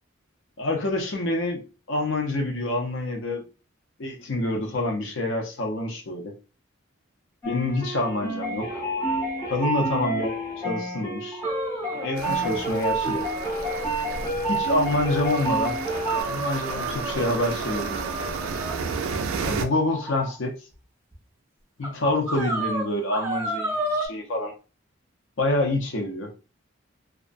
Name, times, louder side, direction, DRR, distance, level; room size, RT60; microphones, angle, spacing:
voice 1, 0.6-3.4 4.0-6.3 7.4-8.8 9.5-10.3 10.6-11.4 11.9-13.3 14.5-15.8 16.2-18.3 19.4-20.6 21.8-24.5 25.4-26.3, left 2 dB, 65° left, 0.6 m, -27 dB
sound 1, 7.4-16.2, right 2 dB, 20° left, 0.7 m, -29 dB
sound 2, 11.3-14.3 14.7-14.8 15.3-15.5 16.1-18.8 19.8-20.3 21.1-21.2 21.8-21.9 22.3-24.1, right 1 dB, 15° right, 0.4 m, -32 dB
sound 3, 12.2-19.7, right 5 dB, 80° right, 0.3 m, -32 dB
2.4 x 2.1 x 2.4 m
head